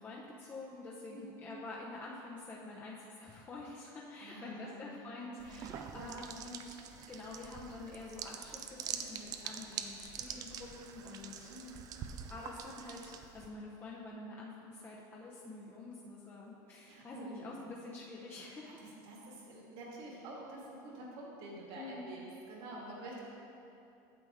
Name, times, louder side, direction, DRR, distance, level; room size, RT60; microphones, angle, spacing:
voice 1, 0.0-6.8 7.1-11.5 12.3-18.8 21.7-22.1, left 3 dB, 20° left, -4 dB, 0.8 m, -47 dB
voice 2, 4.2-5.4 5.9-6.3 11.5-11.8 16.9-17.5 18.6-23.2, right 2 dB, 60° right, -3 dB, 2.0 m, -48 dB
sound 1, 5.4-13.5, right 7 dB, 40° right, 0.5 m, -45 dB
9.1 x 6.9 x 3.6 m, 2.8 s
supercardioid pair, 135°, 10 cm